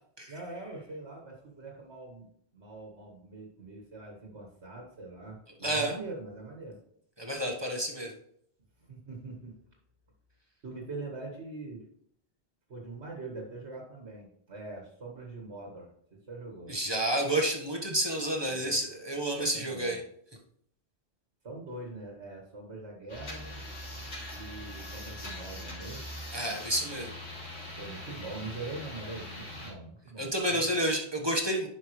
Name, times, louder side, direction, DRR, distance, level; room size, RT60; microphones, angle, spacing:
voice 1, 0.3-2.3 2.5-6.8 8.8-9.5 10.6-11.8 12.7-16.8 18.3-18.8 19.3-20.0 21.4-23.6 24.3-26.0 27.8-30.7, right 2 dB, 85° right, 0 dB, 1.9 m, -43 dB
voice 2, 5.6-5.9 7.2-8.1 16.7-20.0 26.3-27.1 30.2-31.7, right 1 dB, 25° right, 0 dB, 1.2 m, -30 dB
sound 1, 23.1-29.7, left 1 dB, 85° left, 3.0 m, -42 dB
10.5 x 5.7 x 3.1 m, 0.69 s
omnidirectional pair, 1.1 m